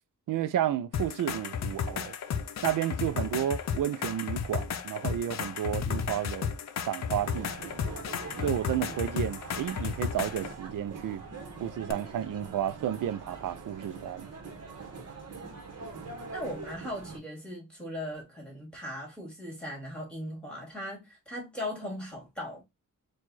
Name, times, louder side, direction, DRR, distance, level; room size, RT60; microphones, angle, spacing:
voice 1, 0.3-2.1 2.6-6.5 6.9-7.7 8.4-11.2 11.6-14.3, right 11 dB, 80° right, 0.5 m, -31 dB
sound 1, 0.9-10.5 11.9-12.0, left 7 dB, 55° left, 0.6 m, -33 dB
sound 2, 7.2-17.2, right 4 dB, 50° right, 1.2 m, -43 dB
voice 2, 16.3-22.6, left 1 dB, 5° left, 2.3 m, -38 dB
4.6 x 2.4 x 4.0 m
wide cardioid pair, 140°, 32 cm